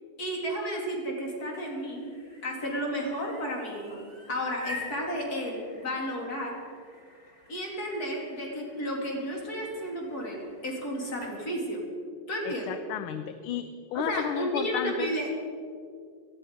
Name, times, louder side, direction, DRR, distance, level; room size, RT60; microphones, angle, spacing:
voice 1, 0.2-2.1 2.4-4.0 4.3-6.6 7.5-11.8 12.3-12.8 13.9-15.4, equal, 45° left, -1 dB, 2.9 m, -32 dB
sound 1, 1.3-11.4, left 2 dB, 20° left, 1.5 m, -47 dB
voice 2, 12.4-15.1, left 10 dB, 80° left, 10 dB, 1.5 m, -33 dB
17.5 x 12.0 x 5.0 m, 2.2 s
omnidirectional pair, 2.4 m